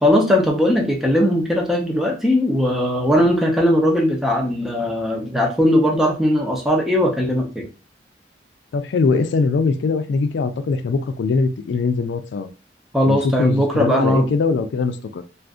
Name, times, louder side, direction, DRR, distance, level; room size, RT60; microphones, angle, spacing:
voice 1, 0.0-7.7 12.9-14.3, equal, ahead, 0.6 m, -19 dB
voice 2, 8.7-12.5 13.1-15.2, left 4 dB, 80° left, 0.3 m, -21 dB
2.5 x 2.4 x 3.5 m
head